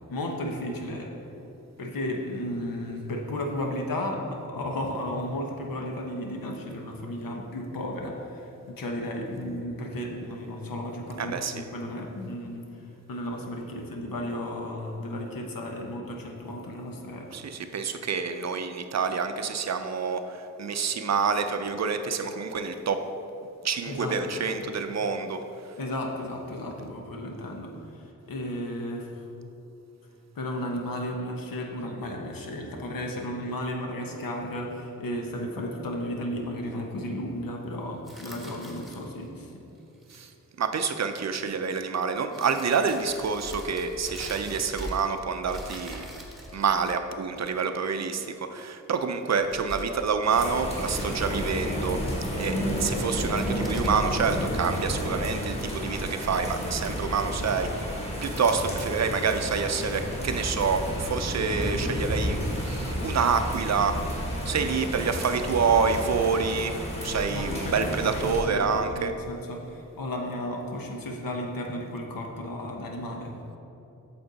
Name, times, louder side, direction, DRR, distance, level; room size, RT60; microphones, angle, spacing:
voice 1, 0.1-1.1 1.8-12.8 13.1-17.4 23.9-24.4 25.8-29.2 30.3-39.6 67.3-73.3, left 1 dB, 85° left, 1 dB, 1.0 m, -34 dB
voice 2, 11.2-11.6 17.3-23.1 23.6-25.4 40.1-40.3 40.6-46.1 46.5-52.0 52.4-64.0 64.5-66.8 67.0-69.1, right 5 dB, 55° right, 8 dB, 0.5 m, -27 dB
sound 1, 38.1-39.3 39.9-40.3 41.7-41.8 42.3-45.2 45.4-47.4 49.3-50.2 50.6-51.7 53.0-55.0, right 1 dB, ahead, 1.0 m, -41 dB
sound 2, 50.3-68.4, equal, 20° left, 1.7 m, -31 dB
8.7 x 6.9 x 4.0 m, 3.0 s
wide cardioid pair, 165°, 33 cm